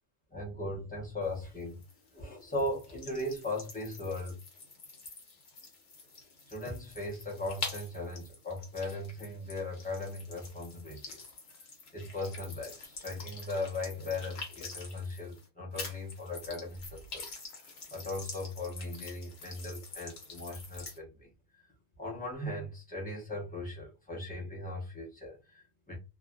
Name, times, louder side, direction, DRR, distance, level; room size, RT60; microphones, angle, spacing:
voice 1, 0.3-1.8 2.1-4.4 6.5-11.3 11.9-17.3 17.9-21.6 22.0-26.0, left 2 dB, 10° left, 0.6 m, -38 dB
sound 1, 1.2-15.5 15.7-21.0, left 4 dB, 50° left, 1.1 m, -46 dB
3.0 x 2.4 x 2.2 m
omnidirectional pair, 1.5 m